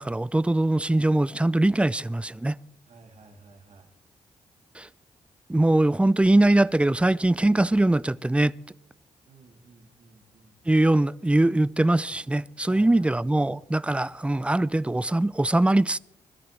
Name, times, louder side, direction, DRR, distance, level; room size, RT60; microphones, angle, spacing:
voice 1, 0.0-2.6 4.8-4.9 5.5-8.6 10.7-16.0, right 1 dB, 10° right, 0.4 m, -22 dB
voice 2, 2.9-3.9 9.2-10.5 12.7-13.5, right 3 dB, 60° right, 2.5 m, -52 dB
21.0 x 13.0 x 3.3 m
supercardioid pair, 55°, 13 cm